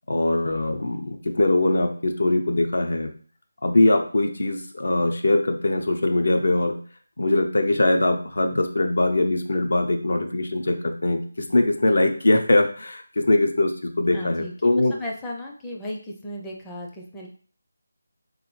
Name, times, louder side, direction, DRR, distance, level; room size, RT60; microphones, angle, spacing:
voice 1, 0.1-3.1 3.6-6.8 7.2-11.2 11.5-14.9, left 2 dB, 65° left, 5 dB, 0.7 m, -22 dB
voice 2, 14.1-17.3, left 1 dB, 10° left, -2 dB, 0.5 m, -35 dB
3.9 x 3.0 x 3.1 m, 0.43 s
figure-of-eight pair, 165°, 0 cm